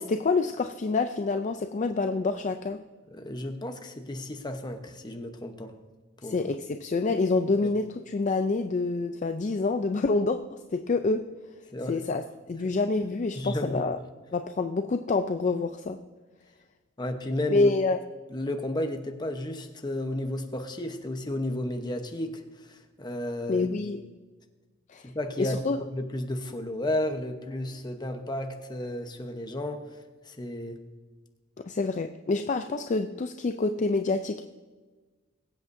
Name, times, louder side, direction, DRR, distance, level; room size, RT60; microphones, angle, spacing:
voice 1, 0.0-2.8 6.2-11.3 11.9-14.0 14.3-16.0 17.5-18.0 23.5-24.1 24.9-25.1 25.4-25.8 31.7-34.4, left 3 dB, 40° left, 7 dB, 0.4 m, -27 dB
voice 2, 3.1-5.7 6.2-6.5 11.7-12.0 12.6-12.7 13.3-13.9 17.0-17.7 18.3-23.7 25.0-25.6 25.9-29.9 30.2-30.8, left 1 dB, 20° left, 5 dB, 0.9 m, -33 dB
22.0 x 8.1 x 2.7 m, 1.3 s
head